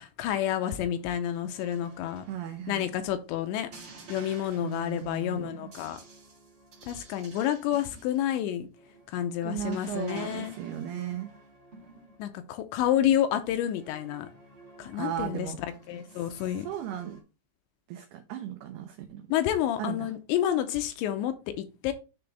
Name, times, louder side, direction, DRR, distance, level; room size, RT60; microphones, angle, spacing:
voice 1, 0.0-2.2 2.7-3.7 4.1-6.0 6.9-8.7 9.1-10.6 12.2-14.3 14.8-16.7 19.3-21.9, left 11 dB, 80° left, 2.8 m, -29 dB
sound 1, 1.5-3.2 3.7-12.5 12.8-13.2 13.7-17.2, right 2 dB, 50° right, 1.3 m, -52 dB
voice 2, 2.3-2.9 4.6-5.6 9.4-11.3 14.9-15.6 16.6-17.2 17.9-19.2 19.8-20.1, right 10 dB, 85° right, 2.2 m, -36 dB
10.0 x 3.5 x 3.3 m
omnidirectional pair, 5.4 m